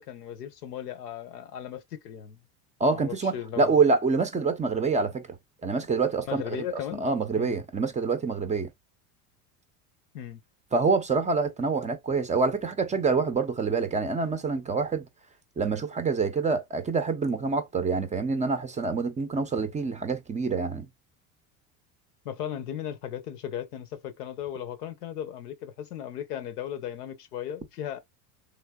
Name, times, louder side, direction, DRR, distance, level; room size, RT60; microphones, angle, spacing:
voice 1, 0.0-2.4 2.9-3.8 6.3-7.1 7.4-7.6 10.1-10.4 22.2-28.0, left 10 dB, 90° left, 0.8 m, -36 dB
voice 2, 2.8-5.3 5.6-8.7 10.7-15.1 15.6-20.9, right 4 dB, 15° right, 0.4 m, -26 dB
3.3 x 2.7 x 2.3 m
hypercardioid pair, 95°, 44 cm